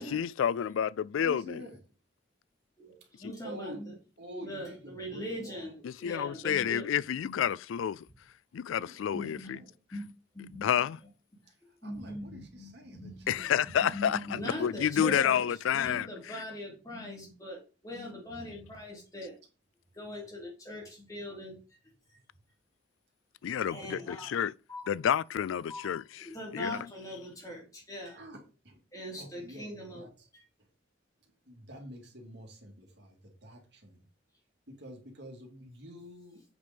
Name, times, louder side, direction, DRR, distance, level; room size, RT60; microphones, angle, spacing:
voice 1, 0.0-1.6 3.2-3.3 5.8-8.0 8.5-9.6 10.6-11.0 13.3-16.1 23.4-24.5 24.9-26.3 26.5-26.8, left 9 dB, 80° left, 0.3 m, -29 dB
voice 2, 1.1-1.8 3.0-3.1 3.4-3.8 4.2-5.7 6.3-6.8 8.8-9.7 11.5-11.6 11.8-13.4 13.8-15.5 23.8-23.9 26.6-26.8 28.1-28.8 29.2-29.7 29.9-30.1 31.5-34.1 34.7-36.4, equal, 55° right, 2.7 m, -48 dB
voice 3, 2.8-3.9 4.4-6.9 7.2-7.4 9.1-9.6 9.9-10.1 10.3-10.7 11.8-15.4 15.7-19.4 19.9-21.6 23.7-24.3 24.7-24.9 25.7-25.9 26.1-28.2 28.9-30.1, equal, 15° left, 3.2 m, -41 dB
8.0 x 5.2 x 5.3 m
head